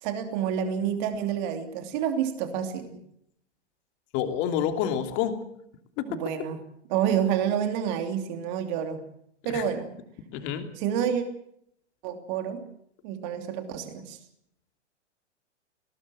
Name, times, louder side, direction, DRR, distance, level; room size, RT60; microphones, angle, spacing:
voice 1, 0.0-2.9 6.1-6.6 6.9-9.0 9.4-9.9 10.8-11.2 12.0-12.6 13.0-14.2, right 8 dB, 40° right, 8 dB, 2.9 m, -28 dB
voice 2, 4.1-5.3 6.0-6.1 9.4-9.6 10.3-10.6, left 9 dB, 35° left, 7 dB, 2.9 m, -28 dB
20.5 x 18.5 x 7.8 m, 0.71 s
figure-of-eight pair, 115°, 35 cm